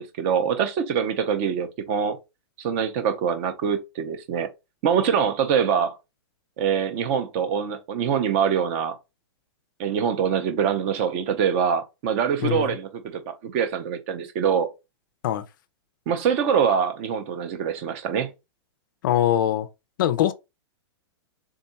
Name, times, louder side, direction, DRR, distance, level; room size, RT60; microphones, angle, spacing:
voice 1, 0.0-2.2 2.6-4.5 4.8-6.0 6.6-9.0 9.8-14.7 16.1-18.3, right 7 dB, 25° right, 0.5 m, -24 dB
voice 2, 12.4-12.7 15.2-15.4 19.0-19.7 20.0-20.3, left 11 dB, 45° left, 0.4 m, -22 dB
3.7 x 2.2 x 4.0 m
supercardioid pair, 175°, 15 cm